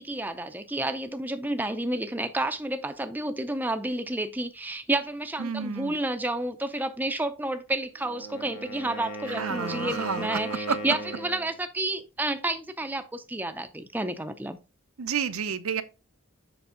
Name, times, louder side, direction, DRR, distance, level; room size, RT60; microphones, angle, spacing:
voice 1, 0.0-14.6, right 1 dB, 10° right, 0.5 m, -30 dB
voice 2, 5.4-5.9 9.3-10.8 15.0-15.8, right 6 dB, 80° right, 0.7 m, -30 dB
Wind instrument woodwind instrument, 7.9-11.5, right 1 dB, 60° left, 2.1 m, -37 dB
7.0 x 5.0 x 3.7 m
head